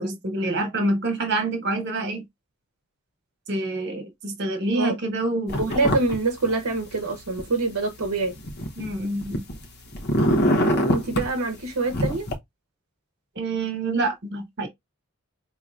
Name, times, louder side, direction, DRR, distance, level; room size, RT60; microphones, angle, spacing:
voice 1, 0.0-2.3 3.5-5.6 8.8-9.4 13.3-14.7, right 2 dB, 55° right, 1.3 m, -27 dB
sound 1, 5.5-6.1 6.4-7.4 8.0-9.6 9.9-11.3 11.9-12.3, equal, 50° left, 0.9 m, -24 dB
voice 2, 5.6-8.3 10.9-12.3, right 3 dB, 75° right, 0.9 m, -25 dB
4.5 x 2.9 x 2.4 m
head